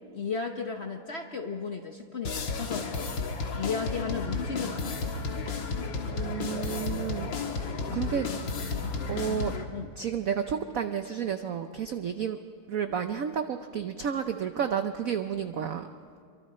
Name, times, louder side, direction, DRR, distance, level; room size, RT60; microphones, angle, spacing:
voice 1, 0.1-3.1 3.5-5.1 9.7-9.9, left 5 dB, 45° left, 4 dB, 0.8 m, -34 dB
sound 1, 2.2-9.6, left 4 dB, 65° left, 2.2 m, -32 dB
voice 2, 6.1-8.3 9.1-9.5 10.0-12.4 12.7-15.9, right 8 dB, 80° right, 8 dB, 0.7 m, -31 dB
27.5 x 24.0 x 4.3 m, 2.1 s
omnidirectional pair, 2.3 m